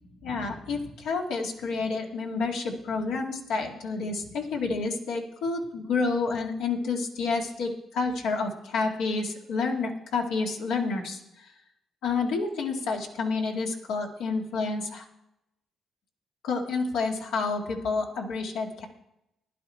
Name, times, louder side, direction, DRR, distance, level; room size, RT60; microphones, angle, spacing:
voice 1, 0.2-11.5 12.0-15.0 16.4-18.8, left 4 dB, 85° left, 1 dB, 2.1 m, -29 dB
15.5 x 11.0 x 4.4 m, 0.85 s
cardioid pair, 90°, 0 cm